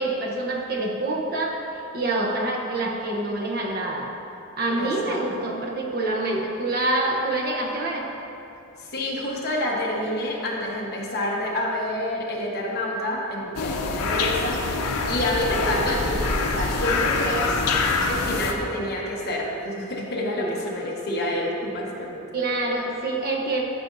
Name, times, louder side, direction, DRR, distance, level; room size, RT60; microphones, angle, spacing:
voice 1, 0.0-1.6 1.9-4.1 4.6-8.1 20.4-20.6 22.3-23.6, right 2 dB, 45° right, -1 dB, 0.9 m, -26 dB
voice 2, 4.8-5.5 8.8-14.8 15.1-17.6 18.1-22.2, left 1 dB, 45° left, -3 dB, 1.2 m, -28 dB
sound 1, 13.6-18.5, left 3 dB, 85° left, 0.7 m, -25 dB
13.0 x 6.2 x 2.7 m, 2.8 s
head